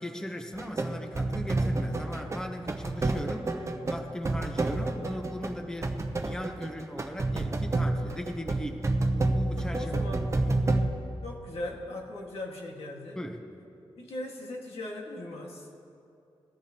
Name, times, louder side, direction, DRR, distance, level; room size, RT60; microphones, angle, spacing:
voice 1, 0.0-10.0 10.3-10.8 13.2-13.5, equal, 5° left, 4 dB, 0.9 m, -38 dB
sound 1, 0.5-10.9, right 2 dB, 30° right, 0.8 m, -29 dB
voice 2, 9.7-10.3 11.2-13.2 14.0-15.7, left 1 dB, 90° left, -1 dB, 1.9 m, -38 dB
20.5 x 14.0 x 2.9 m, 2.7 s
wide cardioid pair, 115°, 10 cm